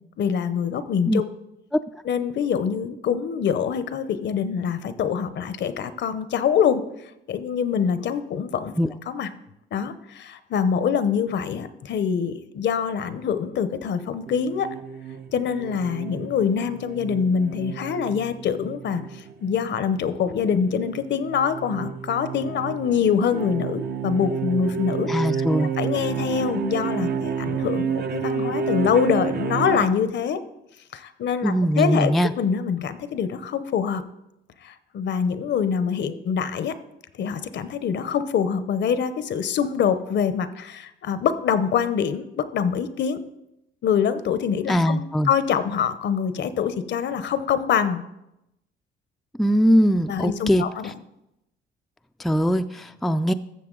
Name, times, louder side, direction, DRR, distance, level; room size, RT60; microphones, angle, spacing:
voice 1, 0.2-1.2 2.0-6.8 7.3-8.7 9.1-9.3 9.7-14.7 15.3-25.1 25.4-30.4 30.9-34.0 34.6-36.8 37.2-43.2 43.8-48.0 50.1-50.9, left 7 dB, 65° left, 13 dB, 0.8 m, -25 dB
sound 1, 14.3-29.9, right 6 dB, 55° right, 0.8 m, -30 dB
voice 2, 25.1-25.7 31.4-32.3 44.7-45.3 49.4-50.6 52.2-53.3, equal, ahead, 8 dB, 0.4 m, -21 dB
13.5 x 7.1 x 3.8 m, 0.87 s
cardioid pair, 90°, 20 cm